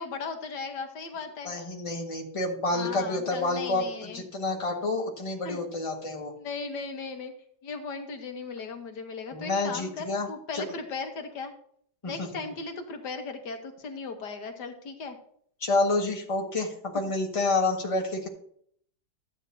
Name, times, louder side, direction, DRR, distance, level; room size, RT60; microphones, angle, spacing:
voice 1, 0.0-1.5 2.7-4.2 5.4-5.6 6.4-7.3 7.6-11.5 12.0-15.2, left 4 dB, 80° left, 5 dB, 1.7 m, -37 dB
voice 2, 1.4-6.3 9.3-10.3 10.5-10.6 12.0-12.3 15.6-18.3, left 2 dB, 20° left, 1 dB, 1.5 m, -29 dB
13.0 x 9.0 x 2.7 m, 0.64 s
omnidirectional pair, 1.8 m